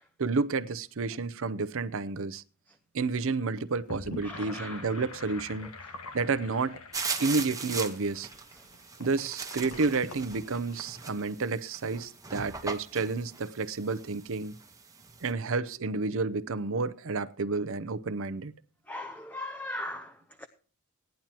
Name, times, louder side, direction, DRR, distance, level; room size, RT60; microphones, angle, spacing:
voice 1, 0.2-2.4 2.9-5.7 6.1-6.8 7.2-8.3 9.0-14.5 15.2-18.5, right 4 dB, 60° right, 0.7 m, -30 dB
Gurgling / Sink (filling or washing), 3.7-11.2, left 3 dB, 85° left, 1.7 m, -45 dB
voice 2, 4.2-4.8 18.9-20.1 20.4-20.5, left 1 dB, 10° left, 0.7 m, -38 dB
sound 1, 6.9-15.3, right 5 dB, 15° right, 1.1 m, -39 dB
17.0 x 10.5 x 3.0 m
head